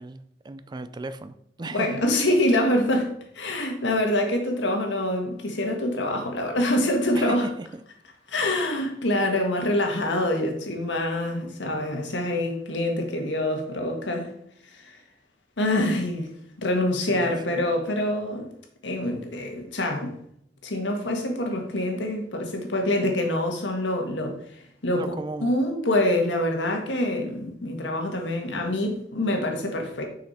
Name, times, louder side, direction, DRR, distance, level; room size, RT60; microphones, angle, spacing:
voice 1, 0.0-1.9 7.1-7.5 17.1-17.6 24.9-25.5, right 2 dB, 25° right, 13 dB, 0.4 m, -36 dB
voice 2, 1.6-7.5 8.3-14.3 14.7-15.0 15.6-16.3 16.6-18.5 18.8-20.1 20.6-25.0 25.4-30.0, left 1 dB, 85° left, 3 dB, 1.6 m, -25 dB
6.3 x 5.7 x 4.2 m, 0.69 s
head